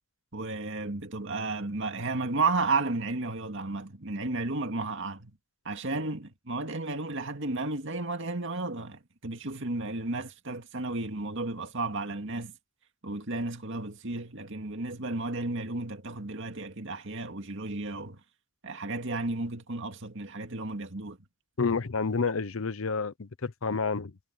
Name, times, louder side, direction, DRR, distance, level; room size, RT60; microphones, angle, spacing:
voice 1, 0.3-5.3 5.6-12.5 13.0-18.2 18.6-21.2, right 3 dB, 65° right, 2.3 m, -33 dB
voice 2, 21.6-24.2, left 4 dB, 75° left, 0.8 m, -29 dB
head